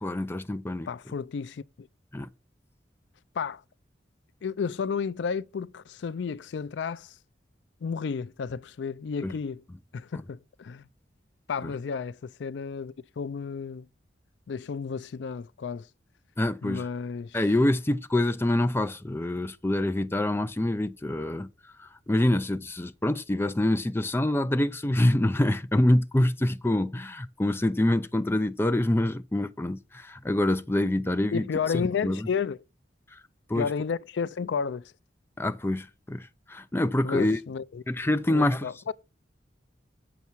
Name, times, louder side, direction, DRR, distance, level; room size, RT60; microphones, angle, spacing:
voice 1, 0.0-0.9 2.1-2.3 9.2-9.3 16.4-16.8 17.3-21.5 21.8-31.4 32.0-32.2 33.5-33.7 35.4-37.4 37.9-38.7, left 1 dB, 15° left, 0.5 m, -26 dB
voice 2, 0.9-1.9 3.3-3.6 4.4-7.2 7.8-9.6 9.9-10.9 11.5-13.9 14.5-15.9 16.6-17.4 31.3-32.6 33.5-34.9 37.0-37.8 38.3-38.9, left 6 dB, 75° left, 0.4 m, -32 dB
8.2 x 6.9 x 4.5 m
head